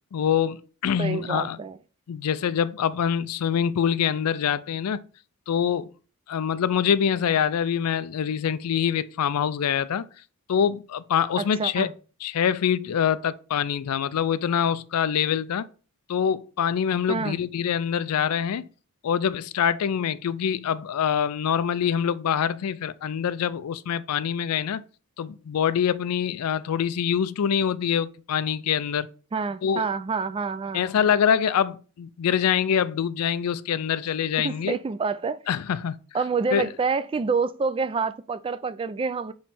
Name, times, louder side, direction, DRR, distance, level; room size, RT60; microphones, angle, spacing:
voice 1, 0.1-1.6 2.1-5.0 5.5-5.9 6.3-10.1 10.5-11.9 12.2-15.7 16.1-18.6 19.0-24.8 25.2-29.1 29.6-29.9 30.7-34.8 35.5-36.0 36.5-36.7, left 8 dB, 80° left, 0.4 m, -25 dB
voice 2, 1.0-1.8 11.4-11.9 17.1-17.4 29.3-30.9 34.4-35.4 36.1-39.3, right 4 dB, 25° right, 0.3 m, -27 dB
7.1 x 3.1 x 4.2 m
head